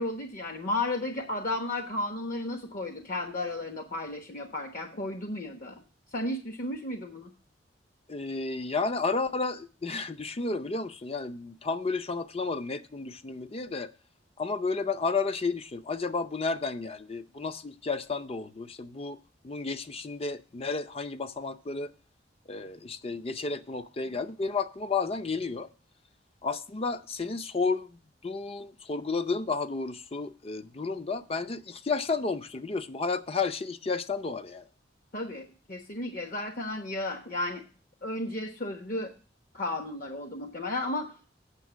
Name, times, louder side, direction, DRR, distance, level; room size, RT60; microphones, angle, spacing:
voice 1, 0.0-5.8 6.1-7.3 35.1-37.6 38.0-39.1 39.5-41.3, left 2 dB, 50° left, 1.1 m, -33 dB
voice 2, 8.1-13.9 14.4-19.2 19.4-21.9 22.5-25.7 26.4-34.7, left 4 dB, 35° left, 0.6 m, -32 dB
8.4 x 6.5 x 6.1 m
head